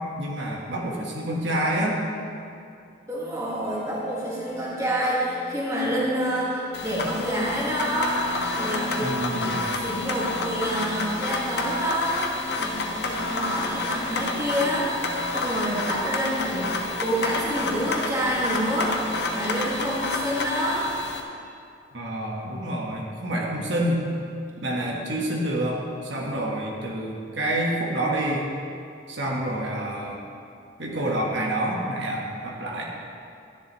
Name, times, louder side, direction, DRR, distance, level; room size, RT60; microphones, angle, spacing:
voice 1, 0.2-2.0 9.0-9.6 21.9-24.0 24.6-28.5 29.1-30.2 30.8-32.8, right 1 dB, 80° right, -2 dB, 1.4 m, -28 dB
sound 1, 3.1-21.0, left 1 dB, 35° left, 0.7 m, -40 dB
voice 2, 3.1-8.3 8.5-9.2 9.7-12.3 12.6-16.7 17.0-20.9, equal, 15° right, -6 dB, 2.0 m, -27 dB
sound 2, 6.7-21.2, left 2 dB, 65° left, 0.9 m, -30 dB
13.0 x 10.5 x 3.1 m, 2.5 s
head